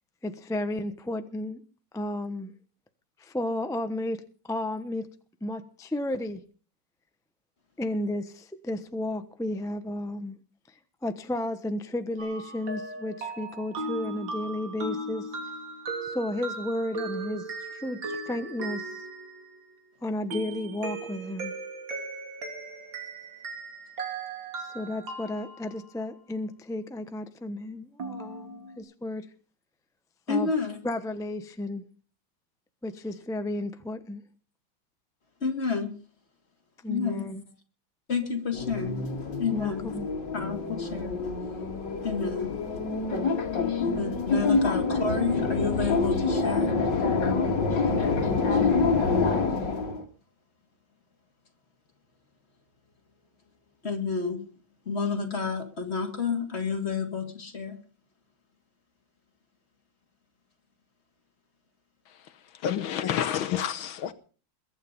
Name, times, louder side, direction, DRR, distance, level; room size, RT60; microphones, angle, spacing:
voice 1, 0.2-1.6 1.9-2.5 3.2-4.2 4.5-5.1 5.4-6.4 7.8-10.4 11.0-15.3 16.0-18.9 20.0-21.5 24.6-29.3 30.3-30.5 30.8-31.8 32.8-34.2 36.8-37.4 39.5-40.1, left 1 dB, 5° left, 0.4 m, -33 dB
sound 1, 12.2-19.7 20.3-26.0 28.0-28.8, right 2 dB, 65° right, 3.7 m, -37 dB
voice 2, 30.3-30.8 35.4-35.9 36.8-37.4 38.1-39.0 39.4-40.0 40.3-41.2 42.0-42.5 43.9-46.8 53.8-54.4 54.8-57.8, left 5 dB, 30° left, 2.8 m, -30 dB
sound 2, 38.5-50.0, left 4 dB, 60° left, 2.6 m, -26 dB
voice 3, 62.6-64.1, left 9 dB, 75° left, 1.7 m, -28 dB
22.0 x 9.4 x 5.4 m
omnidirectional pair, 2.2 m